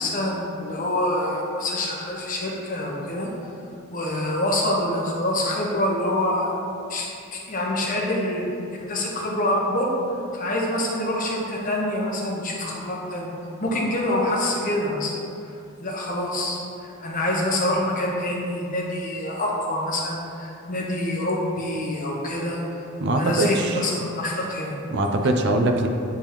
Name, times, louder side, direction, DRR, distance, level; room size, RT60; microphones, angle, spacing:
voice 1, 0.0-3.3 3.9-6.6 6.9-8.4 8.9-9.9 10.3-13.3 13.6-15.1 15.4-15.5 15.8-22.9 23.2-24.7 25.0-25.1, left 1 dB, 40° left, -2 dB, 0.9 m, -26 dB
voice 2, 23.0-23.8 24.9-25.9, right 2 dB, 50° right, 4 dB, 0.4 m, -22 dB
9.1 x 3.5 x 3.0 m, 2.6 s
head